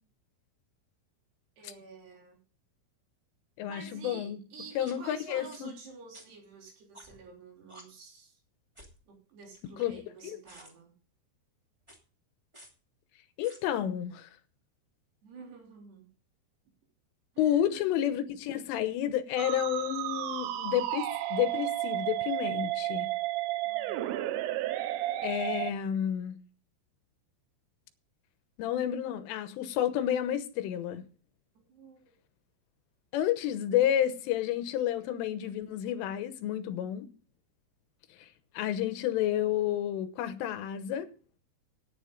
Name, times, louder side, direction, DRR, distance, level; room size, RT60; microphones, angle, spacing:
voice 1, 1.6-2.4 3.7-8.4 9.1-10.9 15.2-16.1 17.4-17.9 23.6-24.1 31.7-32.2, right 5 dB, 55° right, 5.2 m, -49 dB
voice 2, 3.6-4.4 4.8-5.7 9.8-10.0 10.2-10.4 13.4-14.3 17.4-23.1 25.2-26.4 28.6-31.0 33.1-37.1 38.2-38.3 38.6-41.1, left 11 dB, 80° left, 3.5 m, -30 dB
sound 1, 4.8-4.9 5.5-5.6 6.1-6.2 6.9-7.3 7.7-7.8 8.7-9.0 9.5-10.2 10.4-10.7 11.8-12.0 12.5-12.7 13.4-13.6, equal, 30° right, 0.5 m, -52 dB
Musical instrument, 19.4-25.7, right 14 dB, 85° right, 3.5 m, -32 dB
15.0 x 10.0 x 3.9 m
omnidirectional pair, 5.8 m